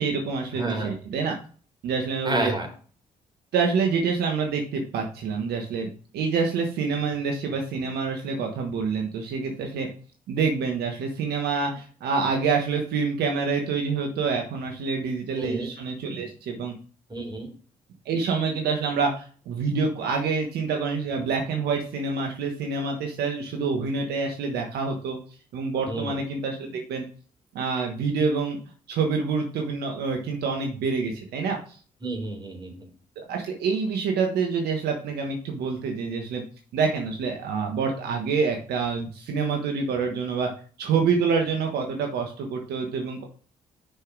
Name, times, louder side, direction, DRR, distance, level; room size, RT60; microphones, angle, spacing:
voice 1, 0.0-1.3 1.8-2.5 3.5-9.9 10.3-16.8 18.0-25.2 25.5-27.0 27.5-28.6 28.9-31.8 33.2-36.4 36.7-40.5 40.8-43.2, right 5 dB, 75° right, 2 dB, 1.3 m, -27 dB
voice 2, 0.6-0.9 2.2-2.7 15.4-15.7 17.1-17.5 25.9-26.2 32.0-32.8, right 1 dB, 25° right, 2 dB, 3.9 m, -30 dB
6.8 x 5.7 x 4.7 m, 0.41 s
hypercardioid pair, 45°, 17 cm